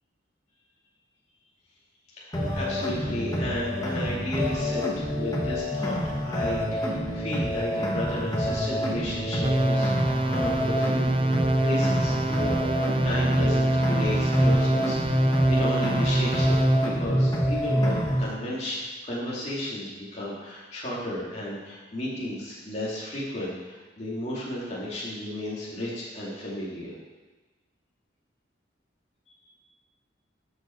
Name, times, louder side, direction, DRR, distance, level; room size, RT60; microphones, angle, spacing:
voice 1, 2.1-9.9 10.2-11.1 11.6-26.9 29.3-29.4, left 1 dB, 35° left, -6 dB, 2.6 m, -33 dB
sound 1, 2.3-18.3, equal, 20° left, 1.3 m, -26 dB
sound 2, 9.4-17.0, right 1 dB, 30° right, 0.5 m, -25 dB
13.0 x 5.6 x 4.5 m, 1.2 s
head